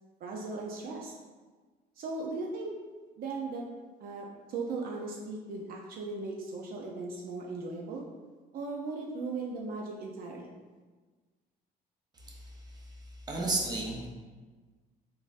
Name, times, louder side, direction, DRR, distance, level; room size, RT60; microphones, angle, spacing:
voice 1, 0.2-1.1 2.0-2.7 3.2-3.6 4.0-8.0 8.5-10.5, right 3 dB, 60° right, -1 dB, 0.5 m, -37 dB
voice 2, 12.2-12.5 13.3-14.1, right 2 dB, 25° right, -1 dB, 0.7 m, -33 dB
3.7 x 2.6 x 2.4 m, 1.4 s
cardioid pair, 110°, 17 cm